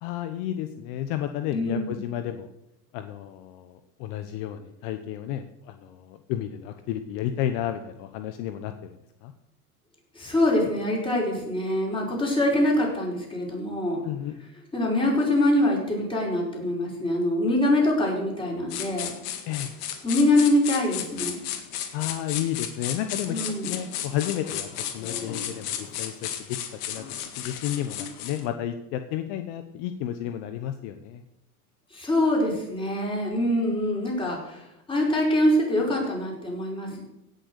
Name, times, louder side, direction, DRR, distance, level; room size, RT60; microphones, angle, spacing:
voice 1, 0.0-2.5 2.9-9.0 9.2-9.3 14.0-14.3 19.5-19.7 21.9-26.6 26.9-31.2, left 11 dB, 55° left, 8 dB, 1.0 m, -32 dB
voice 2, 1.5-2.0 10.1-14.0 14.7-19.2 20.0-21.6 23.3-23.7 31.9-37.0, left 1 dB, 10° left, -3 dB, 5.1 m, -24 dB
sound 1, 18.7-28.4, left 9 dB, 80° left, 2.0 m, -34 dB
17.0 x 6.6 x 6.7 m, 0.87 s
supercardioid pair, 125°, 46 cm